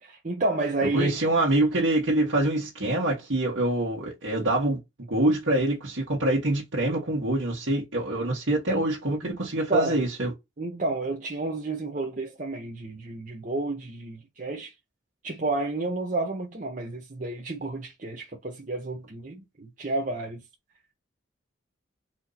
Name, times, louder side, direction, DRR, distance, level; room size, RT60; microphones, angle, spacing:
voice 1, 0.0-1.1 9.2-9.4 9.7-10.0 10.6-14.7 15.2-20.4, right 2 dB, 40° right, 0.8 m, -30 dB
voice 2, 0.8-4.8 5.1-10.3, right 1 dB, 75° right, 1.5 m, -25 dB
4.4 x 2.7 x 3.9 m
head